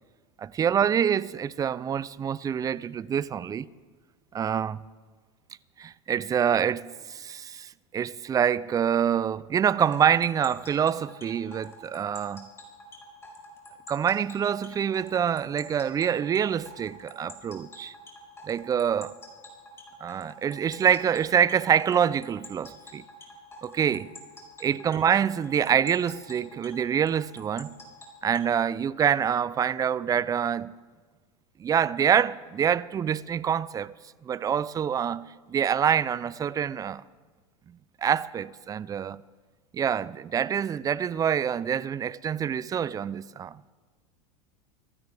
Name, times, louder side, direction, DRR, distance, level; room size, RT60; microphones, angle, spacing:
voice 1, 0.4-3.7 4.3-4.8 5.8-12.5 13.9-17.9 18.5-19.1 20.0-23.0 23.6-24.1 24.6-27.7 28.2-30.7 31.6-33.9 34.2-37.0 37.7-39.2 39.7-43.6, right 8 dB, 20° right, 0.4 m, -26 dB
sound 1, 9.8-28.5, equal, 15° left, 4.9 m, -47 dB
26.5 x 15.5 x 3.4 m
hypercardioid pair, 110°, 17 cm